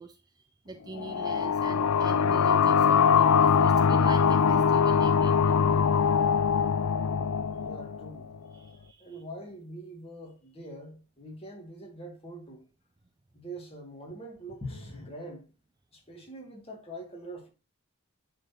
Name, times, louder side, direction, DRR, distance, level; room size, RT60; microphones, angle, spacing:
voice 1, 0.0-5.9 8.5-9.2, right 2 dB, 20° right, 0.4 m, -43 dB
sound 1, 0.9-8.4, left 6 dB, 90° left, 0.4 m, -23 dB
voice 2, 7.6-8.3 9.0-12.6 13.3-15.5 15.9-17.5, right 1 dB, 25° left, 1.9 m, -43 dB
9.9 x 3.9 x 2.8 m
head